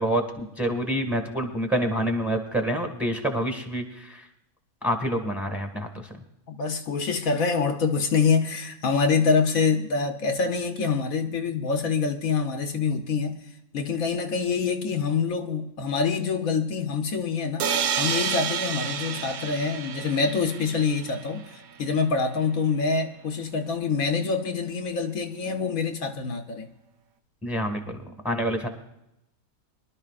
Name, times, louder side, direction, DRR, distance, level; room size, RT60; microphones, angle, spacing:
voice 1, 0.0-4.2 4.8-6.1 27.4-28.7, equal, ahead, 1.6 m, -27 dB
voice 2, 6.5-13.4 13.7-17.7 18.0-21.5 21.8-26.7, left 5 dB, 70° left, 1.4 m, -25 dB
sound 1, 17.6-21.4, right 7 dB, 80° right, 1.2 m, -29 dB
24.0 x 12.0 x 2.5 m
omnidirectional pair, 1.5 m